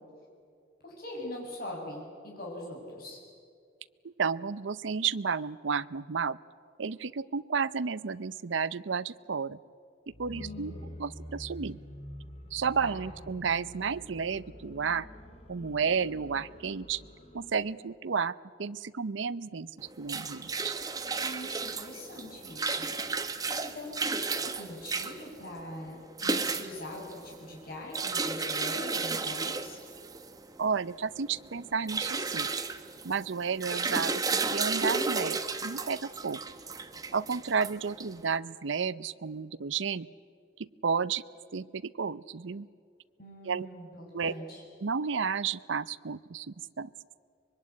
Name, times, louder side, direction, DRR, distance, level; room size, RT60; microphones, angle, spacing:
voice 1, 0.8-3.2 10.3-11.0 12.8-13.0 21.2-22.9 23.2-29.8 43.2-44.6, left 1 dB, 50° left, -1 dB, 7.5 m, -42 dB
voice 2, 4.0-6.4 6.8-9.6 10.2-10.7 11.0-11.8 12.5-15.1 15.5-17.0 17.3-20.8 30.6-32.5 33.0-36.4 37.1-40.1 40.6-41.2 41.5-42.7 43.4-43.7 44.1-44.3 44.8-46.9, right 5 dB, 75° right, 17 dB, 0.6 m, -32 dB
sound 1, 10.1-17.8, equal, 30° left, 2.9 m, -47 dB
sound 2, 19.8-38.3, right 4 dB, 20° right, 1.0 m, -33 dB
24.5 x 22.5 x 9.6 m, 2.3 s
head